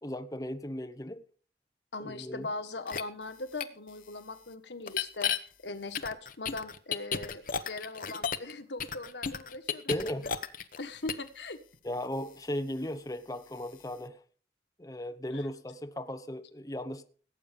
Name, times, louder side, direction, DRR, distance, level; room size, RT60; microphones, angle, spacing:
voice 1, 0.0-1.3 2.0-2.5 9.9-10.2 11.8-14.2 14.8-17.0, left 1 dB, 20° left, 0.9 m, -36 dB
voice 2, 1.9-10.3 10.8-11.6 15.3-15.5, left 3 dB, 90° left, 1.6 m, -40 dB
sound 1, 2.9-3.0 3.6-3.7 4.9-5.4 5.9-8.5 8.8-10.8 11.1-11.3, left 7 dB, 50° left, 1.0 m, -32 dB
17.5 x 8.6 x 5.3 m
head